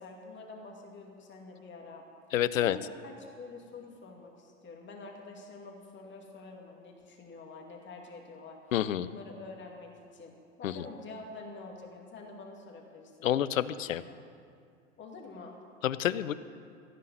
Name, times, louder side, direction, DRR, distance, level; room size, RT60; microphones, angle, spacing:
voice 1, 0.0-2.0 2.6-8.6 9.0-13.8 15.0-15.6, left 3 dB, 30° left, 1 dB, 2.5 m, -47 dB
voice 2, 2.3-2.8 8.7-9.1 10.6-10.8 13.2-14.0 15.8-16.3, left 11 dB, 85° left, 16 dB, 0.6 m, -28 dB
15.5 x 5.6 x 9.9 m, 2.3 s
hypercardioid pair, 95°, 38 cm